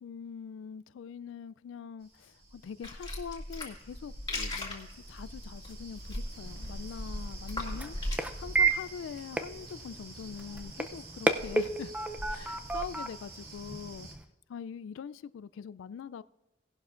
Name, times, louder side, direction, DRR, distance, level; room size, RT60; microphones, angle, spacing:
voice 1, 0.0-8.0 8.4-11.9 12.3-14.1 14.5-16.2, left 7 dB, 70° left, 0.3 m, -43 dB
sound 1, 2.0-14.1, right 1 dB, 50° right, 2.5 m, -47 dB
sound 2, 2.8-8.2, left 1 dB, 20° left, 2.0 m, -38 dB
sound 3, 6.4-14.2, right 3 dB, 5° right, 0.5 m, -33 dB
17.5 x 11.5 x 2.5 m
head